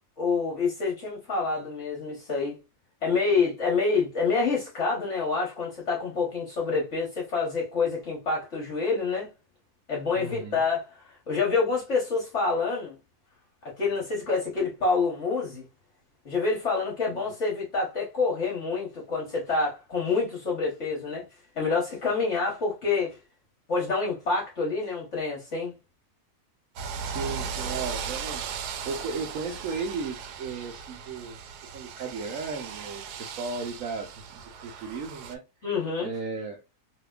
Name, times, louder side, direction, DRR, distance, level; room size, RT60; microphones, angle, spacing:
voice 1, 0.2-2.6 3.0-9.3 9.9-13.0 13.6-15.6 16.2-21.2 21.6-23.2 23.7-25.7 35.6-36.1, left 4 dB, 50° left, 1.3 m, -27 dB
voice 2, 10.2-10.6 17.1-17.2 27.0-28.5 28.8-35.4 36.0-36.6, right 4 dB, 65° right, 0.9 m, -35 dB
sound 1, 26.8-35.4, right 6 dB, 90° right, 1.2 m, -37 dB
3.3 x 2.8 x 2.3 m
omnidirectional pair, 1.7 m